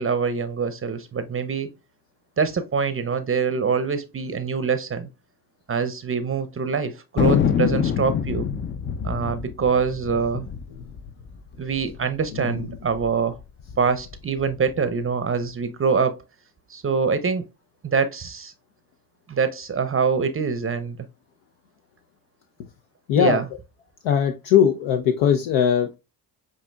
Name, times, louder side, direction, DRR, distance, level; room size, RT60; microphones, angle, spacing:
voice 1, 0.0-1.7 2.4-5.1 5.7-8.5 9.0-10.5 11.6-13.4 13.8-16.1 16.7-17.4 17.8-18.5 19.3-21.0 23.2-23.5, right 5 dB, 30° right, 0.6 m, -24 dB
Thunder, 7.2-12.0 12.2-12.3 12.6-13.1 13.6-14.8, left 7 dB, 30° left, 0.4 m, -25 dB
voice 2, 23.1-23.4 24.0-26.0, left 8 dB, 70° left, 0.6 m, -20 dB
7.7 x 2.8 x 2.2 m
hypercardioid pair, 55°, 46 cm